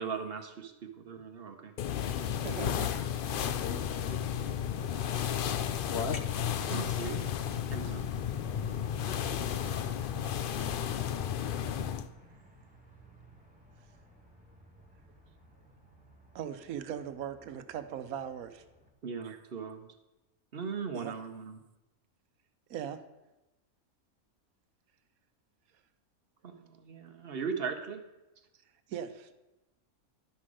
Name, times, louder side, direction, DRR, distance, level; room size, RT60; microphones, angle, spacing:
voice 1, 0.0-1.7 6.7-7.2 7.7-8.1 19.0-19.9 20.5-21.6 26.4-28.0, right 6 dB, 50° right, 6 dB, 1.0 m, -38 dB
sound 1, 1.8-12.1, left 9 dB, 75° left, 0.5 m, -33 dB
voice 2, 1.9-4.6 5.9-6.7, left 5 dB, 55° left, 6 dB, 0.9 m, -41 dB
voice 3, 2.4-2.9 6.7-6.9 16.3-18.6 19.2-19.4 20.9-21.2 22.7-23.0 28.9-29.4, right 9 dB, 85° right, 10 dB, 1.2 m, -39 dB
sound 2, 6.9-18.9, right 1 dB, 5° right, 1.7 m, -56 dB
12.0 x 5.8 x 4.9 m, 1.0 s
omnidirectional pair, 1.5 m